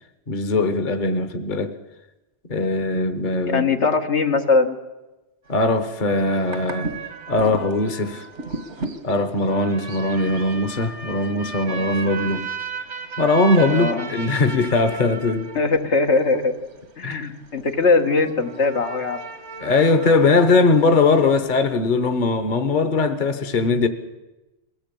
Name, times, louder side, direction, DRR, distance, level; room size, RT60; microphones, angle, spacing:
voice 1, 0.3-1.7 2.5-3.8 5.5-6.9 7.3-8.2 9.0-12.5 13.2-15.5 17.0-17.3 19.6-23.9, left 3 dB, 45° left, 1.2 m, -20 dB
voice 2, 3.5-4.8 13.7-14.1 15.6-16.6 17.0-19.2, left 4 dB, 80° left, 1.8 m, -20 dB
sound 1, 5.5-21.6, right 3 dB, 85° right, 2.0 m, -35 dB
22.0 x 16.0 x 8.5 m
omnidirectional pair, 1.2 m